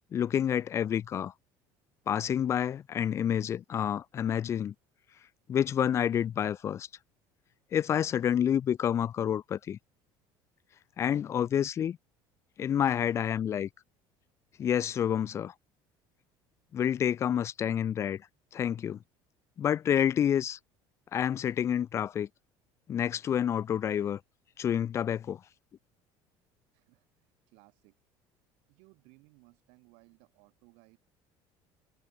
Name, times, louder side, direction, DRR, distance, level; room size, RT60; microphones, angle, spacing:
voice 1, 0.1-1.3 2.1-4.7 5.5-6.9 7.7-9.8 11.0-12.0 12.6-13.7 14.6-15.5 16.7-18.2 18.5-19.0 19.6-20.6 21.1-22.3 22.9-24.2 24.6-25.4, left 9 dB, 30° left, 0.3 m, -28 dB
voice 2, 26.7-27.9 28.7-31.0, right 30 dB, 80° right, 3.9 m, -61 dB
cardioid pair, 145°, 10 cm